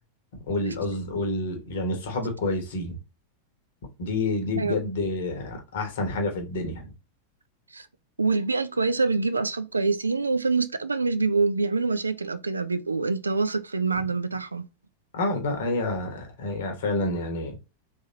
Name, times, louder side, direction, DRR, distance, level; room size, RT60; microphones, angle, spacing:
voice 1, 0.5-3.0 4.0-6.9 15.1-17.6, left 2 dB, 60° left, 1.1 m, -28 dB
voice 2, 8.2-14.7, right 4 dB, 80° right, 0.3 m, -25 dB
3.3 x 2.6 x 2.8 m
figure-of-eight pair, 90°, 0 cm